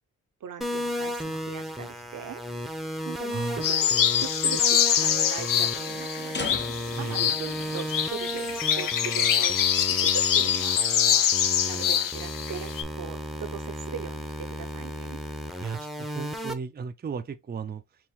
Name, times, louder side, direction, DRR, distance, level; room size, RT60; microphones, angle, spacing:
voice 1, 0.4-2.4 3.0-6.5 7.0-8.5 8.8-10.8 11.7-12.7 13.0-15.2, right 7 dB, 70° right, 0.7 m, -40 dB
sound 1, 0.6-16.5, equal, ahead, 0.7 m, -34 dB
sound 2, 0.7-9.0, left 5 dB, 35° left, 0.7 m, -42 dB
voice 2, 3.3-3.6 6.9-7.2 15.6-17.8, right 6 dB, 30° right, 0.4 m, -35 dB
sound 3, 3.6-12.8, left 9 dB, 80° left, 0.6 m, -25 dB
4.5 x 2.6 x 3.5 m
cardioid pair, 85°, 32 cm